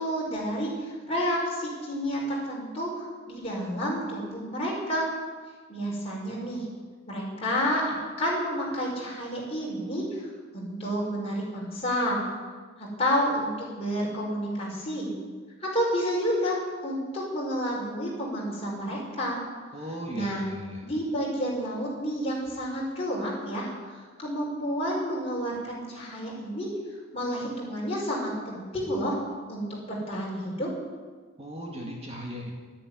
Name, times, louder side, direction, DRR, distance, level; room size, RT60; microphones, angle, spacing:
voice 1, 0.0-5.0 5.7-6.7 7.1-10.3 10.5-12.2 12.8-15.1 15.6-16.6 16.8-19.4 20.1-20.5 20.8-26.7 27.1-29.2 29.5-30.7, equal, 30° left, -4 dB, 5.6 m, -30 dB
voice 2, 19.7-20.9 31.4-32.5, equal, 30° right, -1 dB, 2.1 m, -37 dB
13.0 x 10.0 x 10.0 m, 1.5 s
head